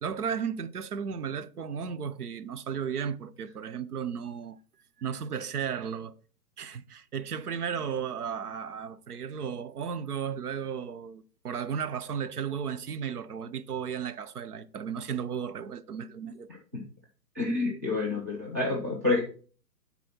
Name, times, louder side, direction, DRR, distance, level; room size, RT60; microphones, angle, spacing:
voice 1, 0.0-4.6 5.0-6.2 6.6-16.5, right 7 dB, 65° right, 0.7 m, -34 dB
voice 2, 17.3-19.2, left 3 dB, 10° right, 0.5 m, -28 dB
9.7 x 4.1 x 4.3 m
figure-of-eight pair, 130°, 50 cm